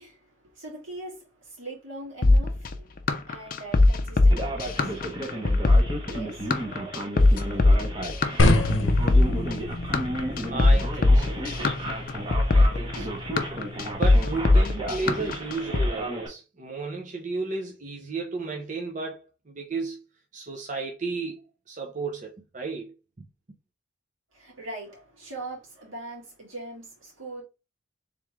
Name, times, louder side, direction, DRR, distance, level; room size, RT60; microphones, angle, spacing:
voice 1, 0.0-8.4 24.3-27.4, right 2 dB, 85° right, 2.4 m, -42 dB
sound 1, 2.2-15.9, left 2 dB, 45° left, 0.5 m, -21 dB
Male speech man speaking, 4.3-16.3, right 1 dB, 25° right, 1.0 m, -34 dB
sound 2, 8.4-14.5, left 2 dB, 80° left, 0.7 m, -28 dB
voice 2, 10.5-11.4 12.5-13.2 14.0-20.0 20.3-22.9, right 4 dB, 40° right, 0.7 m, -33 dB
3.6 x 3.5 x 3.2 m
head